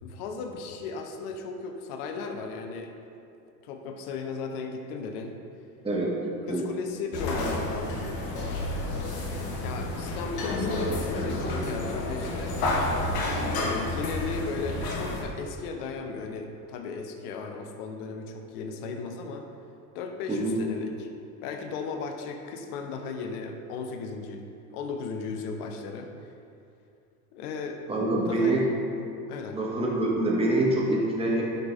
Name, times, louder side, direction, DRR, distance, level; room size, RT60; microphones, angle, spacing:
voice 1, 0.0-2.9 3.6-5.3 6.5-8.1 9.6-12.6 13.3-19.4 19.9-21.1 21.4-24.4 24.7-26.1 27.3-27.8 28.3-28.6 29.3-29.6, left 4 dB, 70° left, 5 dB, 1.0 m, -36 dB
voice 2, 5.8-6.7 20.3-20.6 27.9-28.6 29.5-31.4, right 2 dB, 10° right, -4 dB, 1.9 m, -25 dB
sound 1, 7.1-15.2, left 2 dB, 50° left, 1.8 m, -30 dB
11.0 x 5.3 x 4.2 m, 2.6 s
hypercardioid pair, 80°, 47 cm